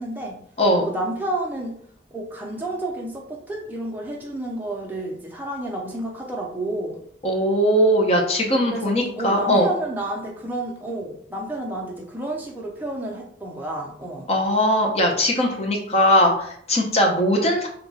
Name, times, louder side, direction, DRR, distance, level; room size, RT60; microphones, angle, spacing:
voice 1, 0.0-0.4 0.8-1.8 2.1-7.0 8.7-14.3, right 1 dB, 10° right, -1 dB, 0.5 m, -30 dB
voice 2, 7.2-9.7 14.3-17.7, equal, 35° left, 1 dB, 0.6 m, -20 dB
2.8 x 2.2 x 4.0 m, 0.65 s
head